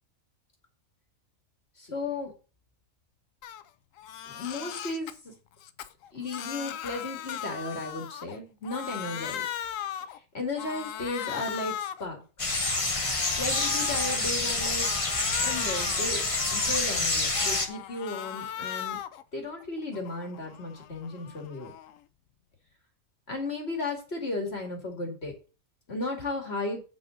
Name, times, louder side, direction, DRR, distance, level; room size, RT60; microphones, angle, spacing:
voice 1, 1.8-2.3 4.3-5.4 6.1-9.5 10.3-12.5 13.4-14.9 15.4-16.3 16.5-19.0 19.3-21.7 23.3-25.3 25.9-26.8, left 2 dB, 50° left, 1 dB, 2.6 m, -35 dB
Crying sobbing, 3.4-3.6 4.0-5.1 5.6-8.4 8.6-10.2 10.6-12.1 12.5-14.2 14.6-16.9 17.3-19.2 19.6-22.0, left 10 dB, 75° left, 1.0 m, -38 dB
sound 1, 12.4-17.7, left 2 dB, 25° left, 1.2 m, -27 dB
7.7 x 5.6 x 6.4 m, 0.34 s
omnidirectional pair, 1.4 m